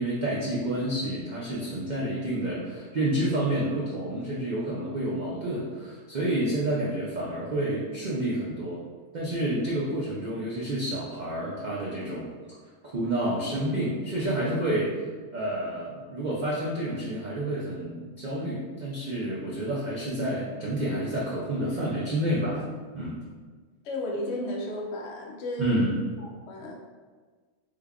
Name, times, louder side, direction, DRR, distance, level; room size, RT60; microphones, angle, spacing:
voice 1, 0.0-8.8 9.1-12.3 12.9-14.9 15.3-22.7 22.9-23.2 25.6-26.0, right 1 dB, 70° right, -6 dB, 0.4 m, -29 dB
voice 2, 23.8-25.8 26.2-26.7, left 1 dB, 65° left, 0 dB, 0.8 m, -33 dB
3.5 x 3.3 x 2.2 m, 1.5 s
omnidirectional pair, 1.5 m